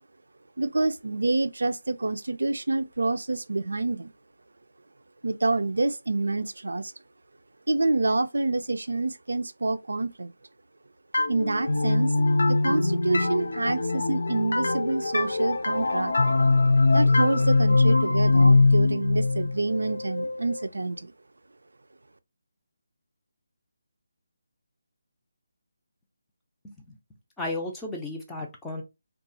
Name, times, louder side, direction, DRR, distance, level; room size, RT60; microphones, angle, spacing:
voice 1, 0.6-4.1 5.2-6.9 7.7-10.3 11.3-12.1 12.5-16.1 16.9-21.1, right 2 dB, 80° right, 0.3 m, -27 dB
sound 1, 11.1-20.7, left 3 dB, 75° left, 0.4 m, -22 dB
voice 2, 26.6-27.0 27.4-28.8, left 2 dB, 5° left, 0.5 m, -34 dB
2.7 x 2.3 x 2.7 m
figure-of-eight pair, 160°, 0 cm